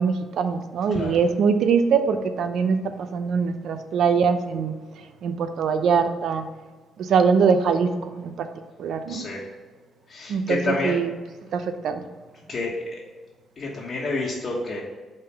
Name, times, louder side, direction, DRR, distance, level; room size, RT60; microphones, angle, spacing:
voice 1, 0.0-2.8 3.1-4.7 5.2-6.5 7.0-8.5 8.8-9.2 10.3-11.1 11.5-12.0, right 6 dB, 70° right, 9 dB, 0.6 m, -22 dB
voice 2, 9.1-9.5 10.1-11.0 12.5-13.0 13.6-14.8, left 2 dB, 45° left, -5 dB, 1.3 m, -29 dB
5.4 x 3.6 x 5.8 m, 1.3 s
cardioid pair, 90°, 0 cm